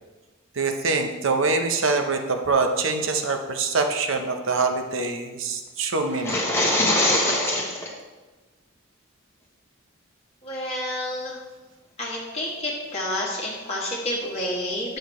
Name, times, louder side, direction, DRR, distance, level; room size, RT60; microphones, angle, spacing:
voice 1, 0.6-6.4, right 3 dB, 65° right, 5 dB, 0.8 m, -24 dB
sound 1, 6.1-7.9, left 1 dB, 10° left, 1.1 m, -22 dB
voice 2, 10.4-11.4 12.0-15.0, left 1 dB, 30° left, -4 dB, 1.4 m, -29 dB
10.0 x 6.5 x 3.2 m, 1.3 s
head